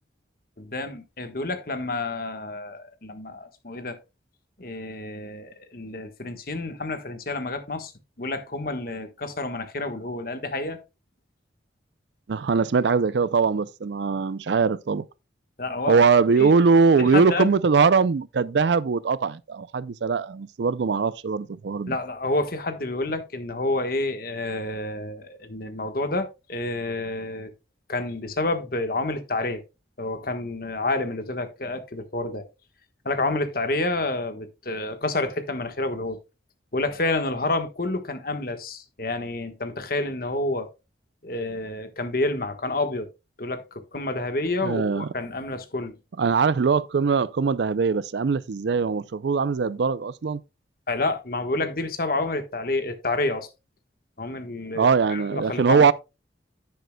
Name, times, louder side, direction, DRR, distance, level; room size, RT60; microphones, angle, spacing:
voice 1, 0.6-4.0 4.6-7.9 8.2-10.8 15.6-16.0 16.4-16.5 17.1-17.5 21.9-27.5 27.9-29.6 30.0-32.5 33.0-36.2 36.7-40.7 41.2-43.1 43.4-45.9 50.9-53.5 54.2-55.8, left 2 dB, 50° left, 1.3 m, -29 dB
voice 2, 12.3-15.1 15.9-22.0 44.6-45.1 46.2-50.4 54.7-55.9, right 5 dB, 65° right, 0.4 m, -21 dB
10.5 x 9.3 x 2.2 m
head